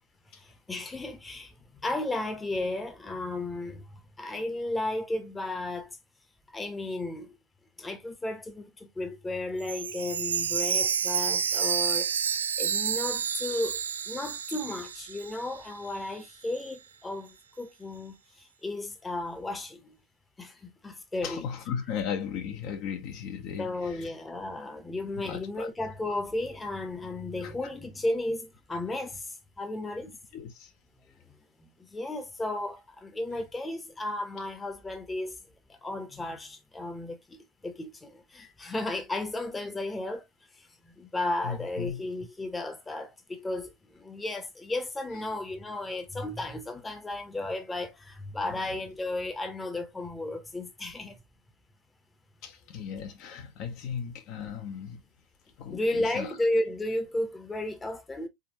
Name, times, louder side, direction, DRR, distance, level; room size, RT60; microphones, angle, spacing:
voice 1, 0.3-1.5 1.8-6.0 6.5-7.4 7.8-12.1 12.6-13.8 14.1-19.9 20.4-21.4 23.6-30.1 31.6-35.4 35.7-40.2 40.6-51.2 55.7-58.3, left 2 dB, 10° left, 1.1 m, -34 dB
Chime, 9.6-15.6 15.9-16.0 16.5-16.6, right 7 dB, 65° right, 0.4 m, -29 dB
voice 2, 21.2-24.1 25.2-25.7 27.4-27.5 30.3-30.7 41.4-42.0 48.4-48.8 52.4-55.0 55.6-56.4, left 7 dB, 40° left, 1.0 m, -36 dB
4.3 x 3.8 x 3.0 m
figure-of-eight pair, 90°, 0 cm